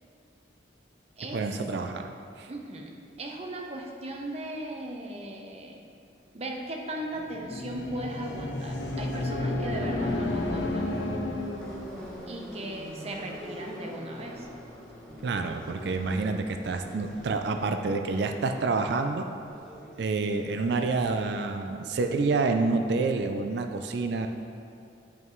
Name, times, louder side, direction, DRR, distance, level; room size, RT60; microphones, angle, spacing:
voice 1, 1.3-2.1 2.4-2.5 15.2-19.3 20.0-24.3, right 3 dB, 60° right, 6 dB, 0.4 m, -28 dB
voice 2, 2.5-2.9 3.2-5.8 6.3-10.9 12.3-14.5, right 1 dB, 35° right, 1 dB, 0.7 m, -37 dB
sound 1, 7.1-11.8, left 2 dB, 70° left, 0.8 m, -31 dB
Subway metro underground, 8.8-21.3, equal, 5° left, 1.0 m, -44 dB
9.1 x 5.4 x 3.1 m, 2.6 s
head